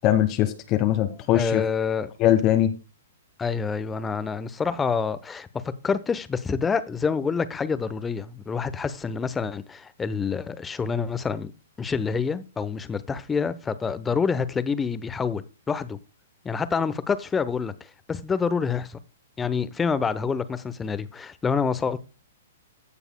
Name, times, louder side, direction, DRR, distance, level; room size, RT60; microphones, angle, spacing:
voice 1, 0.0-1.6 2.2-2.7, left 12 dB, 35° left, 1.1 m, -21 dB
voice 2, 1.0-2.1 3.4-11.5 11.8-16.0 16.4-17.7 18.1-19.0 19.4-22.0, left 5 dB, 15° left, 0.8 m, -27 dB
15.5 x 7.0 x 2.2 m
hypercardioid pair, 120°, 0 cm